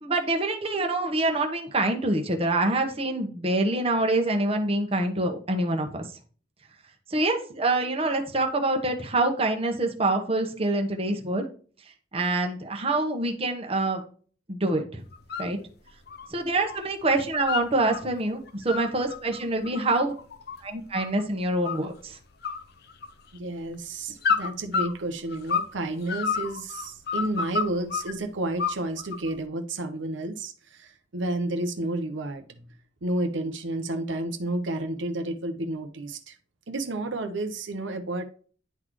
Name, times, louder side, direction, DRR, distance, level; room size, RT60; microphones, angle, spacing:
voice 1, 0.0-6.0 7.1-11.4 12.1-14.0 14.5-15.0 15.4-15.6 16.3-20.1 20.6-22.2, right 2 dB, 30° right, 3 dB, 1.1 m, -26 dB
sound 1, 15.1-15.5 15.9-16.8 17.1-18.0 18.5-21.2 21.6-22.1 22.4-23.4 24.2-25.8 26.1-28.1 28.6-29.3, left 5 dB, 55° left, 0.7 m, -29 dB
voice 2, 23.3-32.7 33.0-36.4 36.7-38.2, right 2 dB, 75° right, 5 dB, 0.9 m, -31 dB
10.5 x 4.0 x 3.1 m, 0.42 s
head